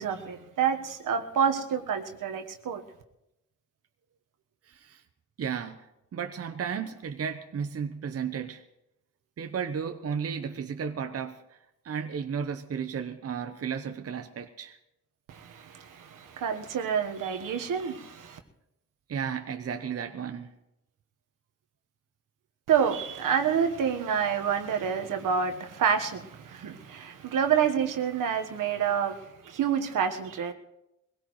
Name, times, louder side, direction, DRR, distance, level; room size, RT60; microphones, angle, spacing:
voice 1, 0.0-2.8 15.3-18.4 22.7-30.5, right 7 dB, 75° right, 1.4 m, -28 dB
voice 2, 4.7-5.0 5.4-5.9 6.1-8.6 9.4-11.6 11.8-14.8 19.1-20.5, right 7 dB, 45° right, 0.9 m, -34 dB
22.0 x 17.0 x 3.2 m
cardioid pair, 90°, 33 cm